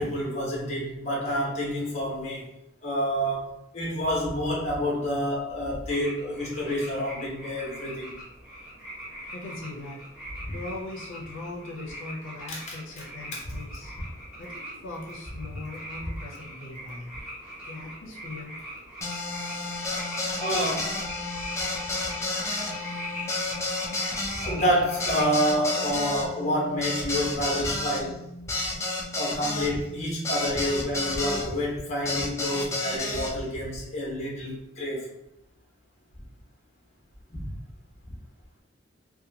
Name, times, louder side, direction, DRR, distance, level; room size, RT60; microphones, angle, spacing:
voice 1, 0.0-2.4 2.8-8.1 10.4-10.5 12.5-12.6 20.4-20.9 24.5-28.2 29.2-35.1 37.3-37.4, equal, 35° left, -4 dB, 0.8 m, -28 dB
sound 1, 5.9-25.3, equal, 5° right, 0.9 m, -42 dB
voice 2, 9.3-10.0 10.5-13.9 14.4-17.1 17.7-18.5, left 2 dB, 85° left, -2 dB, 0.5 m, -40 dB
sound 2, 19.0-31.5 32.1-33.3, left 2 dB, 15° left, 0.4 m, -31 dB
2.8 x 2.2 x 2.6 m, 0.85 s
head